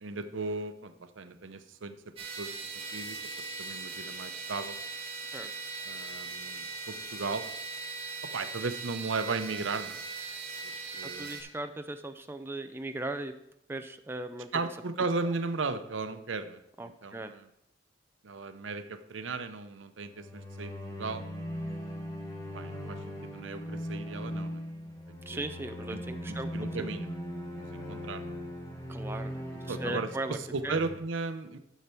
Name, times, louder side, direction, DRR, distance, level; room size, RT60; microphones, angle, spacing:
voice 1, 0.0-2.0 2.4-2.5 2.9-3.2 3.6-4.8 5.9-7.4 8.3-10.0 10.6-11.4 14.5-17.5 18.2-21.2 22.5-24.6 25.1-25.4 25.9-26.0 26.3-28.3 29.7-31.6, right 3 dB, 90° right, 10 dB, 0.7 m, -36 dB
sound 1, 2.2-11.4, right 4 dB, 30° right, 1.6 m, -40 dB
voice 2, 11.0-13.3 13.7-14.6 16.8-17.3 25.3-26.5 28.9-30.4 30.6-30.8, right 2 dB, 10° right, 7 dB, 0.4 m, -38 dB
sound 2, 20.0-31.0, equal, 20° left, 1.4 m, -39 dB
10.0 x 6.7 x 4.5 m, 0.79 s
head